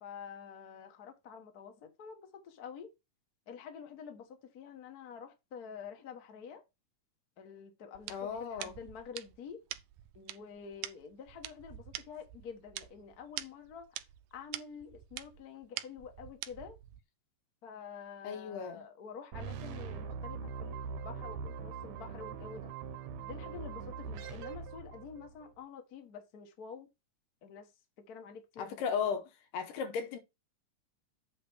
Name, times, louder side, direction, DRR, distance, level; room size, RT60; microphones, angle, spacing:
voice 1, 0.0-2.9 3.5-4.3 4.5-6.6 7.4-9.6 10.1-13.9 14.3-16.8 17.6-22.7 23.2-26.9 27.4-27.7 28.1-29.0, left 6 dB, 55° left, 1.0 m, -48 dB
sound 1, 8.0-17.0, right 14 dB, 90° right, 2.3 m, -46 dB
voice 2, 8.1-8.8 18.2-18.8 28.6-29.3 29.5-30.2, left 6 dB, 80° left, 2.5 m, -35 dB
sound 2, 19.3-25.5, right 6 dB, 70° right, 1.9 m, -42 dB
8.5 x 3.2 x 6.2 m
omnidirectional pair, 3.8 m